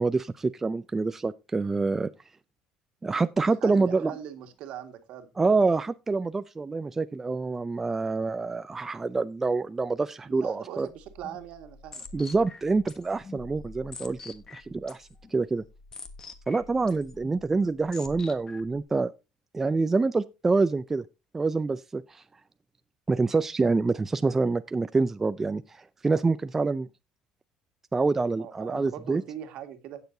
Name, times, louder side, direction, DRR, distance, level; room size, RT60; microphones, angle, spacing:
voice 1, 0.0-2.1 3.0-4.1 5.4-10.9 12.1-15.6 16.5-19.1 19.5-21.0 21.3-22.2 23.1-26.9 27.9-29.2, right 3 dB, 15° right, 0.4 m, -26 dB
voice 2, 3.4-5.3 10.3-12.0 28.4-30.0, right 10 dB, 65° right, 1.8 m, -41 dB
sound 1, 10.9-18.8, left 4 dB, 30° left, 1.4 m, -46 dB
17.0 x 6.8 x 2.7 m
cardioid pair, 120°, 2 cm